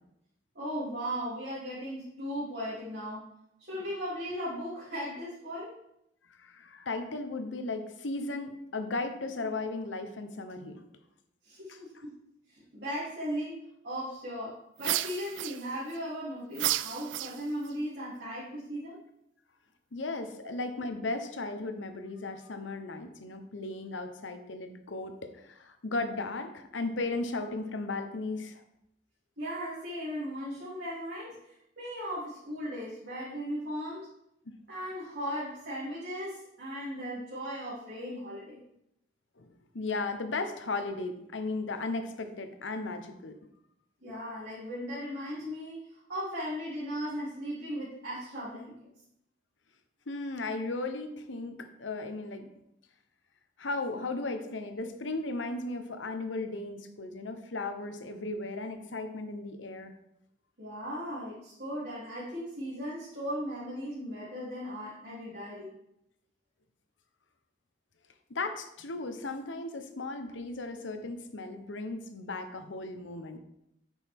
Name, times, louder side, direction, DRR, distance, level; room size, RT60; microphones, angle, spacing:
voice 1, 0.5-3.3 3.6-5.7 11.4-12.2 12.5-19.0 20.4-20.5 29.4-34.1 34.7-38.6 44.0-48.7 60.6-65.7, equal, 65° right, -10 dB, 3.1 m, -37 dB
voice 2, 6.4-10.8 11.7-11.8 19.9-28.6 39.4-43.4 50.1-52.5 53.6-59.9 68.3-73.4, left 3 dB, 90° left, 7 dB, 1.0 m, -36 dB
sound 1, 14.8-16.0 16.5-17.7, right 14 dB, 85° right, 0.3 m, -32 dB
9.1 x 6.3 x 3.6 m, 0.79 s
head